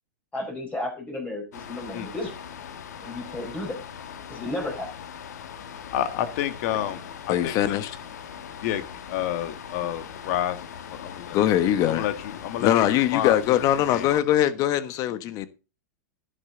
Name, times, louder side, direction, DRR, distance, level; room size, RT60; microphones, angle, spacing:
voice 1, 0.3-2.3 3.0-3.7 4.3-4.9, left 1 dB, 15° left, 4.7 m, -33 dB
sound 1, 1.5-14.2, left 8 dB, 75° left, 1.7 m, -41 dB
voice 2, 5.9-7.8 8.6-8.8 9.1-10.6 10.9-11.4 11.9-13.6 13.9-14.1, left 11 dB, 55° left, 1.9 m, -29 dB
voice 3, 7.3-8.0 11.3-12.1 12.6-15.5, left 12 dB, 40° left, 1.3 m, -22 dB
11.5 x 10.5 x 3.9 m
hypercardioid pair, 120°, 9 cm